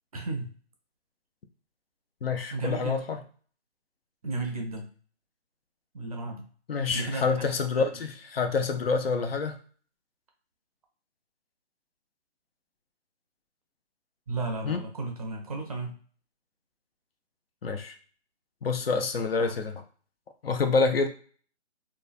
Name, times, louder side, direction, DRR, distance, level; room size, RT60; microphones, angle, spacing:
voice 1, 0.1-0.5 2.5-3.0 4.2-4.9 5.9-6.5 6.9-7.5 7.8-7.9 14.3-16.0, right 2 dB, 35° right, 2 dB, 0.5 m, -34 dB
voice 2, 2.2-3.2 6.7-9.6 14.6-14.8 17.6-18.0 18.6-19.8 20.4-21.1, left 4 dB, 55° left, 6 dB, 0.6 m, -27 dB
3.0 x 2.3 x 2.4 m, 0.43 s
figure-of-eight pair, 150°, 34 cm